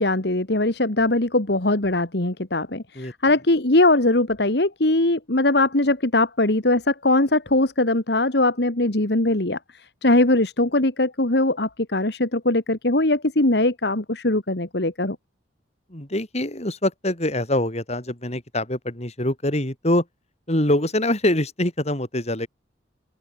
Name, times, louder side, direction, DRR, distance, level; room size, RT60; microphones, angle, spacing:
voice 1, 0.0-9.6 10.0-15.2, left 2 dB, 65° left, 2.2 m, -21 dB
voice 2, 15.9-20.1 20.5-22.5, left 1 dB, 40° left, 5.5 m, -24 dB
open air
head